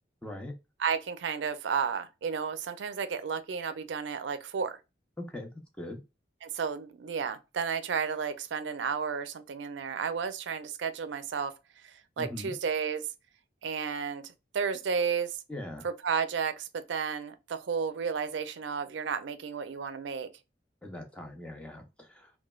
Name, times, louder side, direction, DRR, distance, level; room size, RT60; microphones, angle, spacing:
voice 1, 0.2-0.5 5.2-5.5 5.8-6.0 12.2-12.5 15.5-15.9 20.8-22.3, left 1 dB, 5° left, 0.5 m, -40 dB
voice 2, 0.8-4.8 6.4-11.5 11.8-13.0 13.6-15.4 15.8-20.3, right 6 dB, 80° right, 0.4 m, -32 dB
3.1 x 2.2 x 2.2 m
head